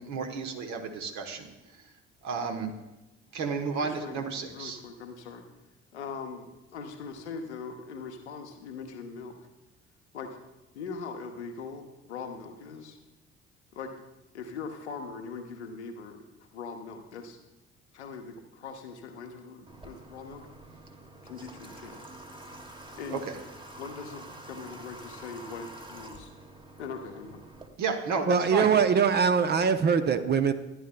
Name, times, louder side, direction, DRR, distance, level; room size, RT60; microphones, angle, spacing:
voice 1, 0.0-1.5 1.7-1.9 2.2-2.7 3.3-4.8 23.1-23.4 27.8-28.7, right 5 dB, 55° right, 4 dB, 1.3 m, -32 dB
voice 2, 3.8-5.5 5.9-9.4 10.1-10.4 10.7-13.0 13.7-13.9 14.3-16.2 16.5-17.4 17.9-20.4 21.2-22.0 22.9-23.2 23.8-26.3 26.8-27.4, left 5 dB, 80° left, 4 dB, 0.9 m, -41 dB
Water / Water tap faucet, 19.7-27.7, right 1 dB, 15° right, 1.3 m, -47 dB
voice 3, 28.3-30.5, right 6 dB, 30° right, 10 dB, 0.7 m, -22 dB
13.5 x 10.0 x 2.2 m, 1.0 s
figure-of-eight pair, 50°, 33 cm